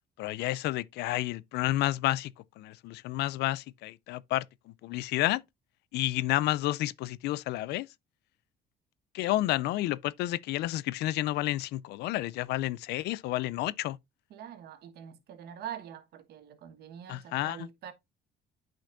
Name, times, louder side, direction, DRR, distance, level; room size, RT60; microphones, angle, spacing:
voice 1, 0.2-5.4 5.9-7.9 9.1-14.0 17.1-17.7, left 16 dB, 80° left, 0.4 m, -30 dB
voice 2, 14.3-17.9, right 9 dB, 70° right, 1.3 m, -44 dB
8.8 x 5.2 x 2.5 m
cardioid pair, 110°, 17 cm